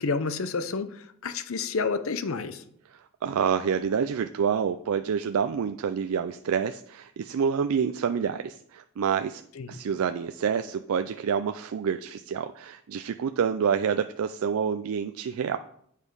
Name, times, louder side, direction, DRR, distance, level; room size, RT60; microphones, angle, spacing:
voice 1, 0.0-2.6 9.6-9.8, left 4 dB, 65° left, 11 dB, 0.6 m, -30 dB
voice 2, 2.9-9.4 9.7-15.6, right 7 dB, 70° right, 9 dB, 0.4 m, -28 dB
8.3 x 5.1 x 5.4 m, 0.68 s
head